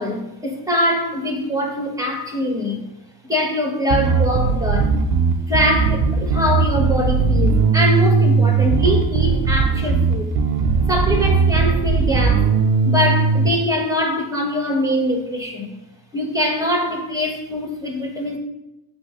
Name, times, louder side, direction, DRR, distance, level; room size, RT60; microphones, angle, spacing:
voice 1, 0.0-2.8 3.3-5.0 5.5-10.3 10.9-12.5 12.8-15.8 16.1-18.4, left 1 dB, 10° right, 2 dB, 1.1 m, -23 dB
Bass guitar, 3.9-13.5, right 5 dB, 65° right, 0.6 m, -18 dB
8.0 x 2.7 x 2.5 m, 0.93 s
cardioid pair, 65°, 44 cm